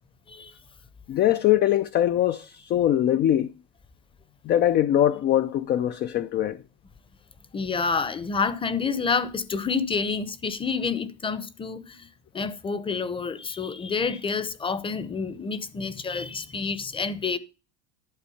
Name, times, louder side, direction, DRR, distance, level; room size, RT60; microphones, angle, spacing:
voice 1, 1.1-3.5 4.5-6.6, left 11 dB, 30° left, 0.4 m, -22 dB
voice 2, 7.5-12.1 12.3-17.4, left 5 dB, 15° left, 0.8 m, -28 dB
11.5 x 4.3 x 7.0 m
supercardioid pair, 125°, 35 cm